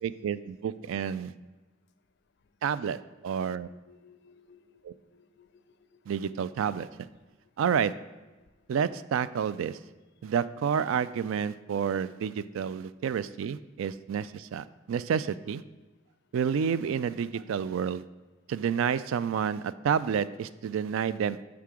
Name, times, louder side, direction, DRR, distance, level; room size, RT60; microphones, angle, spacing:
voice 1, 0.0-1.3 2.6-3.7 4.8-4.9 6.1-6.9 7.6-7.9 8.7-9.8 10.2-15.6 16.3-18.0 18.5-21.5, right 7 dB, 90° right, 16 dB, 0.3 m, -29 dB
voice 2, 3.4-6.0, left 5 dB, 60° left, 10 dB, 0.5 m, -60 dB
9.4 x 3.8 x 4.9 m, 1.2 s
head